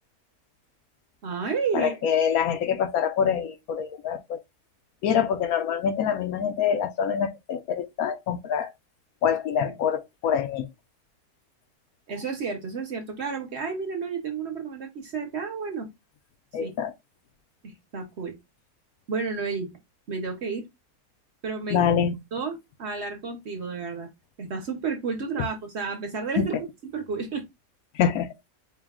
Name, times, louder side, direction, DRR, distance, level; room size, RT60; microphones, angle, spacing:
voice 1, 1.2-1.9 9.6-9.7 12.1-15.9 16.6-16.7 17.6-18.4 19.1-19.7 20.1-20.7 21.4-21.8 22.3-24.1 24.4-26.5 26.9-27.5, right 5 dB, 55° right, 0.9 m, -31 dB
voice 2, 1.7-4.4 5.0-8.7 9.2-10.7 16.5-16.9 21.7-22.2 26.4-26.5 27.9-28.3, left 8 dB, 75° left, 1.0 m, -25 dB
4.7 x 2.2 x 3.5 m
omnidirectional pair, 1.6 m